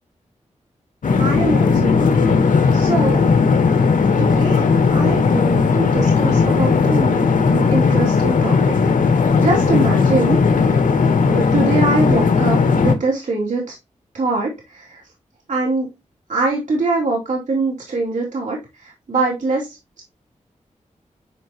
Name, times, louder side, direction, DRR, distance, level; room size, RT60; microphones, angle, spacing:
sound 1, 1.0-12.9, left 5 dB, 90° left, 1.1 m, -16 dB
voice 1, 1.2-2.1 2.7-3.2 4.2-8.7 9.4-10.9 11.3-13.7 14.1-15.0 15.5-15.9 16.3-20.0, right 3 dB, 70° right, -3 dB, 2.9 m, -23 dB
9.9 x 4.9 x 3.0 m, 0.23 s
wide cardioid pair, 105°, 13 cm